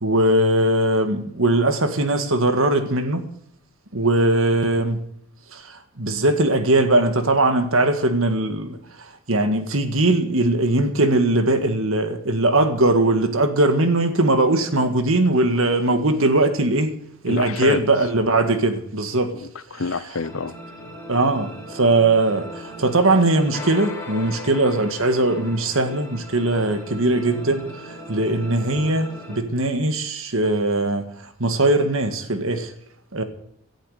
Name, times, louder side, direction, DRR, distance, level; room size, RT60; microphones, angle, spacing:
voice 1, 0.0-3.3 3.9-5.1 5.5-17.0 17.2-19.3 19.7-19.8 21.1-32.7 33.1-33.2, right 2 dB, 60° right, 1.9 m, -20 dB
voice 2, 17.3-17.8 19.3-20.6, left 4 dB, 65° left, 0.8 m, -27 dB
sound 1, 20.2-29.4, left 1 dB, 10° left, 4.2 m, -38 dB
17.5 x 11.5 x 5.1 m
head